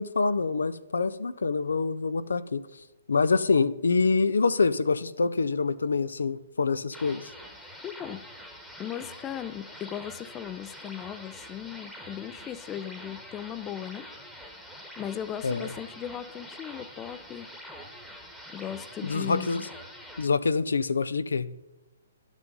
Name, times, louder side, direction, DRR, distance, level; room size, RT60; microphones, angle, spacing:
voice 1, 0.0-2.6 3.1-7.3 15.4-15.7 19.0-19.7 20.2-21.5, left 4 dB, 90° left, 14 dB, 0.4 m, -26 dB
sound 1, 6.9-20.3, equal, 5° left, 1.1 m, -45 dB
voice 2, 7.8-8.2 8.8-14.1 15.0-17.5 18.5-19.7, left 10 dB, 20° left, 14 dB, 0.4 m, -37 dB
11.0 x 6.2 x 5.3 m, 1.1 s
hypercardioid pair, 145°, 0 cm